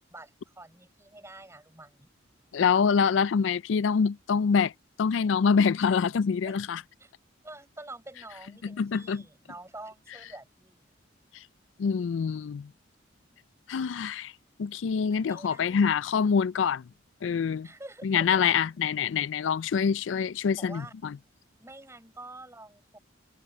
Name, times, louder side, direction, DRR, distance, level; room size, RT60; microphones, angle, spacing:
voice 1, 0.0-2.1 6.5-6.6 7.0-7.1 7.4-10.9 15.1-15.8 17.6-18.4 20.6-20.9 21.6-23.0, right 2 dB, 15° right, 6.2 m, -47 dB
voice 2, 2.5-4.7 5.0-6.8 8.6-9.2 11.8-12.7 13.7-14.3 14.6-16.8 17.2-17.7 18.0-21.2, left 6 dB, 75° left, 0.4 m, -25 dB
head